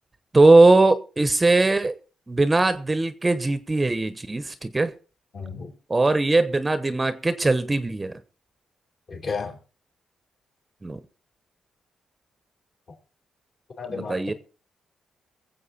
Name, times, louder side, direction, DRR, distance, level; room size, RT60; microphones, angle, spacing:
voice 1, 0.3-2.0 2.3-4.9 5.9-8.1 10.8-11.0 13.9-14.3, right 2 dB, 20° right, 0.9 m, -20 dB
voice 2, 5.3-5.7 9.1-9.6 13.8-14.4, left 5 dB, 50° left, 3.9 m, -32 dB
22.5 x 7.7 x 4.2 m
cardioid pair, 100°, 0 cm